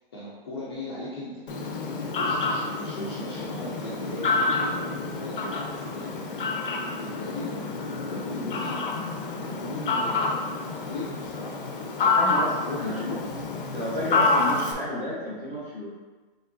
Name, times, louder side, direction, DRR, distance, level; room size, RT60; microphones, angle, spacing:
voice 1, 0.1-1.4 2.2-6.6 7.0-7.6 8.1-8.9 9.4-11.6 12.6-13.2, left 1 dB, 25° left, -7 dB, 0.6 m, -38 dB
Fowl, 1.5-14.7, left 3 dB, 65° left, 0.7 m, -28 dB
voice 2, 12.0-13.0 13.7-15.9, left 1 dB, 15° right, -8 dB, 0.9 m, -32 dB
5.2 x 3.1 x 2.6 m, 1.3 s
hypercardioid pair, 170°, 29 cm